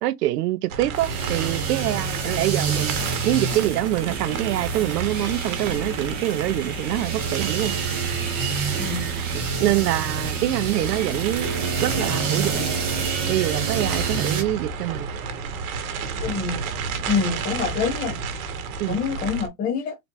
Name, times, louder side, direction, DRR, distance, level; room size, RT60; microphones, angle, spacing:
voice 1, 0.0-3.0 3.2-7.7 9.3-11.5 11.8-12.7 13.3-15.1 18.8-19.0, right 15 dB, 80° right, 0.7 m, -25 dB
sound 1, 0.7-19.5, right 4 dB, 60° right, 1.2 m, -32 dB
sound 2, 0.9-14.4, right 6 dB, 15° right, 0.4 m, -28 dB
voice 2, 8.8-9.1 16.2-16.6 17.1-18.1 18.9-20.0, left 5 dB, 15° left, 1.0 m, -26 dB
3.9 x 3.4 x 3.0 m
supercardioid pair, 170°, 47 cm